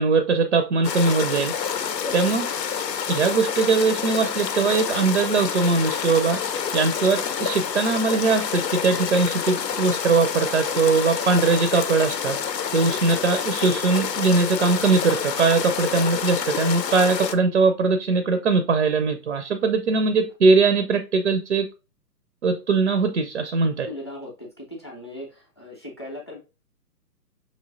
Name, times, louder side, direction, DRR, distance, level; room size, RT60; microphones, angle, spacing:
voice 1, 0.0-1.5 2.1-2.4 3.1-6.4 6.7-12.4 12.7-21.7 22.4-23.9, right 4 dB, 50° right, 0.4 m, -21 dB
sound 1, 0.8-17.3, left 7 dB, 85° left, 0.7 m, -28 dB
voice 2, 2.0-2.6 13.1-13.2 16.0-16.3 23.9-26.4, left 1 dB, 20° left, 0.5 m, -39 dB
5.2 x 3.1 x 2.5 m
hypercardioid pair, 150°, 49 cm